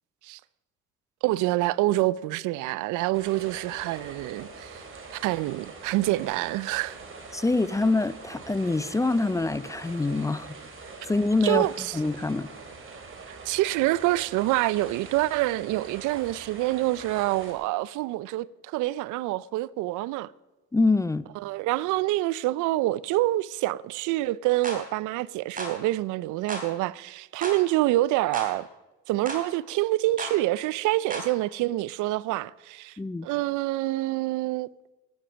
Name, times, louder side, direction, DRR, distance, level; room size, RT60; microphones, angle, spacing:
voice 1, 1.2-4.8 5.1-7.0 11.4-12.0 13.3-20.3 21.4-28.7 29.1-34.7, right 17 dB, 80° right, 0.5 m, -26 dB
sound 1, 3.1-17.5, right 4 dB, 45° right, 3.6 m, -44 dB
voice 2, 7.3-10.5 11.1-11.7 11.9-12.5 20.7-21.3 33.0-33.3, left 3 dB, 10° left, 0.4 m, -25 dB
sound 2, 24.6-24.8 25.6-25.8 26.5-26.7 27.4-27.6 28.3-28.5 29.3-29.4 30.2-30.4 31.1-31.3, right 2 dB, 30° right, 3.9 m, -34 dB
14.0 x 10.5 x 6.2 m
cardioid pair, 90°, 30 cm